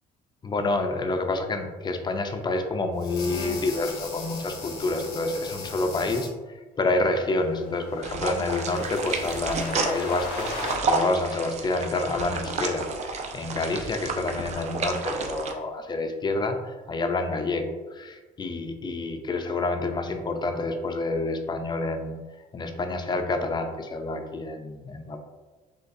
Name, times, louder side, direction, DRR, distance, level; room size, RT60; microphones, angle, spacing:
voice 1, 0.4-22.2 22.5-25.2, left 2 dB, 25° left, 5 dB, 0.5 m, -28 dB
sound 1, 3.0-6.3 7.4-10.8, left 3 dB, 85° left, 1.1 m, -37 dB
sound 2, 8.0-15.5, right 4 dB, 40° right, 0.6 m, -31 dB
6.4 x 2.5 x 2.6 m, 1.3 s
cardioid pair, 110°, 17 cm